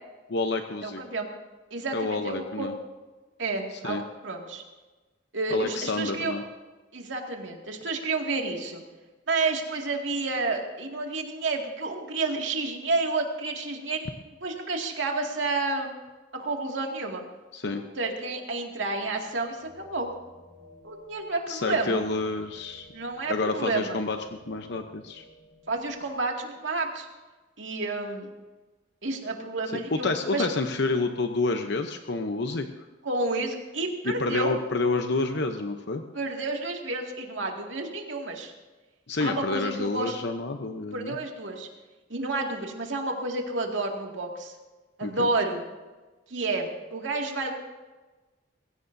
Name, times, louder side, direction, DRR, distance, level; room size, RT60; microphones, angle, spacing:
voice 1, 0.3-1.0 1.9-2.8 3.8-4.0 5.5-6.4 17.5-17.8 21.5-22.9 23.3-24.2 24.5-25.2 29.9-32.7 34.0-36.0 39.1-41.2 45.0-45.3, left 3 dB, 65° left, 6 dB, 0.9 m, -28 dB
voice 2, 0.8-1.3 1.7-2.7 3.4-4.6 5.3-6.3 6.9-8.8 9.3-15.9 16.3-17.2 18.0-20.1 20.8-22.0 22.9-24.0 25.7-27.1 27.6-28.3 29.0-30.5 33.0-34.5 36.1-38.5 39.2-40.2 40.9-41.7 42.1-44.5 45.0-45.6 46.3-47.5, right 3 dB, 80° right, 1 dB, 2.3 m, -30 dB
sound 1, 18.9-26.2, left 2 dB, 60° right, 5.9 m, -53 dB
21.0 x 16.5 x 2.7 m, 1.2 s
head